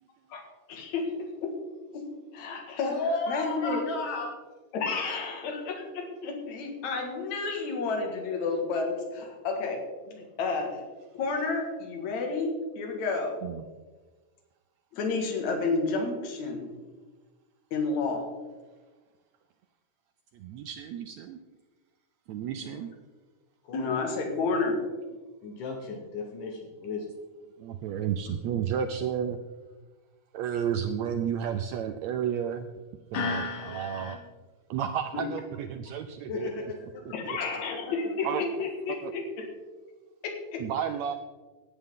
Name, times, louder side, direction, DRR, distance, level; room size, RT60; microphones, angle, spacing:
voice 1, 0.7-1.1 1.4-1.5 1.9-2.0 2.3-3.0 3.3-3.8 4.7-9.8 10.1-10.8 11.1-13.4 14.9-16.7 17.7-18.2 23.7-24.8 35.1-35.2 37.1-39.5 40.2-40.6, left 4 dB, 65° left, 2 dB, 3.0 m, -31 dB
voice 2, 2.8-4.3 22.6-22.8 23.6-23.9 25.4-27.1 33.1-34.2 36.3-36.5 37.7-37.8, left 3 dB, 80° left, 1 dB, 2.8 m, -33 dB
voice 3, 20.3-21.4 22.3-22.9 25.1-25.2 27.6-29.4 30.3-32.8 33.1-34.2 34.7-36.5 37.0-37.4 38.2-38.4 38.9-39.1 40.6-41.1, right 8 dB, 80° right, 7 dB, 1.6 m, -32 dB
17.5 x 9.1 x 3.7 m, 1.3 s
omnidirectional pair, 3.7 m